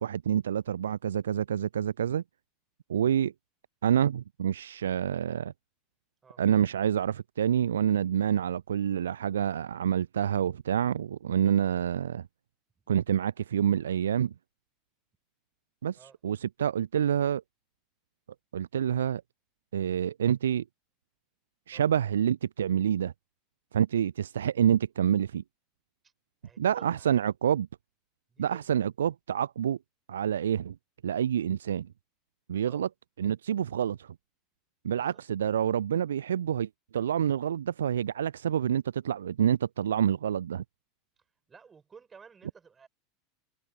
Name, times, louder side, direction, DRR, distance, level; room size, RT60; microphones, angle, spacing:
voice 1, 0.0-2.2 2.9-3.3 3.8-5.5 6.4-12.2 12.9-14.3 15.8-16.0 16.2-17.4 18.5-19.2 19.7-20.6 21.7-23.1 23.7-25.4 26.6-27.7 28.4-29.8 30.1-30.7 31.0-31.9 32.5-32.9 33.2-34.1 34.8-40.6, right 9 dB, 70° right, 0.4 m, -27 dB
voice 2, 26.4-27.1 28.3-28.8 32.6-32.9 34.9-35.2 41.5-42.9, right 6 dB, 20° right, 7.6 m, -55 dB
figure-of-eight pair, 80°, 0 cm